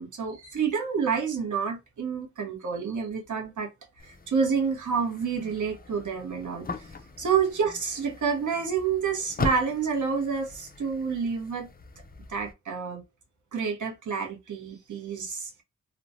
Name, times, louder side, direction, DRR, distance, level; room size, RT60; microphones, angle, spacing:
voice 1, 0.0-3.7 4.0-11.7 12.3-13.0 13.5-15.6, right 6 dB, 65° right, 1.0 m, -29 dB
sound 1, 4.0-12.5, left 3 dB, 30° left, 0.5 m, -40 dB
3.1 x 2.1 x 2.6 m
wide cardioid pair, 110°, 32 cm